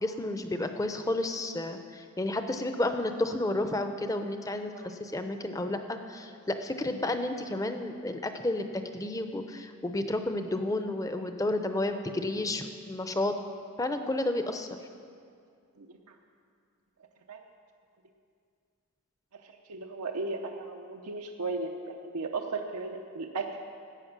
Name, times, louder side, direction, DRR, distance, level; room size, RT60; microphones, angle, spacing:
voice 1, 0.0-13.3 13.8-14.7, left 2 dB, 15° left, 7 dB, 0.6 m, -31 dB
voice 2, 19.7-23.6, right 3 dB, 90° right, 2 dB, 0.7 m, -35 dB
15.0 x 8.7 x 6.0 m, 2.3 s
head